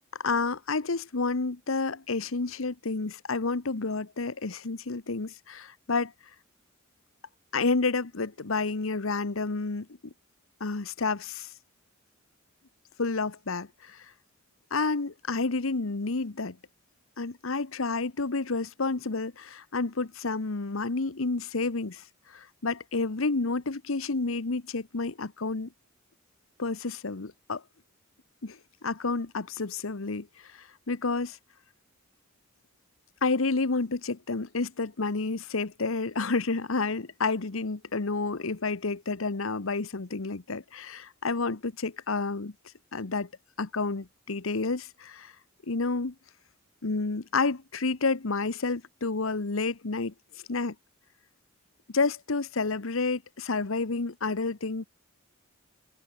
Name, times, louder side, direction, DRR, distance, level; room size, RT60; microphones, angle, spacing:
voice 1, 0.2-6.1 7.5-9.9 10.6-11.5 13.0-14.0 14.7-16.6 17.2-25.7 26.6-27.6 28.4-31.4 33.2-42.5 42.9-43.3 43.6-45.3 45.7-46.1 46.8-50.1 50.5-50.7 51.9-54.9, left 3 dB, 75° left, 1.1 m, -30 dB
head